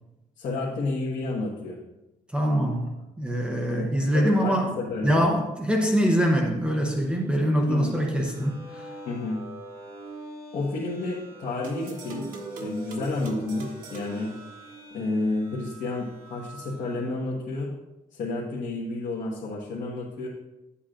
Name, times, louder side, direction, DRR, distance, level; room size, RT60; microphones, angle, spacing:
voice 1, 0.4-1.8 3.7-5.2 7.7-7.9 9.0-9.4 10.5-12.3 12.6-14.3 14.9-17.7 18.1-20.3, left 2 dB, 70° left, -5 dB, 1.4 m, -30 dB
voice 2, 2.3-4.8 5.0-8.9, equal, 5° right, 1 dB, 0.8 m, -24 dB
sound 1, 6.9-17.2, right 1 dB, 40° right, 2.0 m, -45 dB
sound 2, 11.6-15.1, right 3 dB, 80° right, 1.4 m, -40 dB
11.0 x 8.4 x 2.5 m, 0.99 s
cardioid pair, 150°, 14 cm